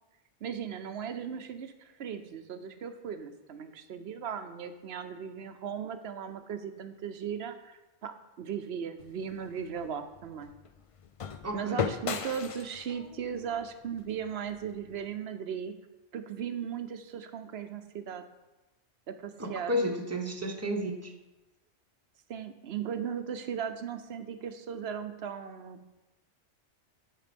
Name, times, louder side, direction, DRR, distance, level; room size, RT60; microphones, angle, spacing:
voice 1, 0.4-10.5 11.5-15.7 16.1-18.2 19.1-19.7 22.3-25.9, right 7 dB, 65° right, 9 dB, 0.9 m, -37 dB
sound 1, 9.0-15.1, left 6 dB, 55° left, 0.3 m, -39 dB
voice 2, 11.4-11.9 19.4-21.1, equal, 15° right, 2 dB, 1.0 m, -32 dB
10.5 x 5.2 x 5.2 m, 1.0 s
omnidirectional pair, 1.2 m